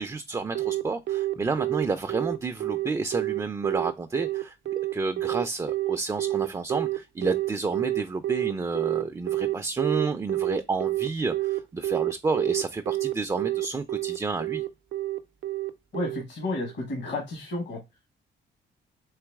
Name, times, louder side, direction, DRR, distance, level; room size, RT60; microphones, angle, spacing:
voice 1, 0.0-14.6, right 4 dB, 15° right, 0.3 m, -30 dB
Telephone, 0.5-16.7, right 15 dB, 75° right, 0.5 m, -28 dB
voice 2, 15.9-17.8, left 2 dB, 65° left, 1.3 m, -31 dB
3.9 x 2.9 x 3.4 m
cardioid pair, 90°, 20 cm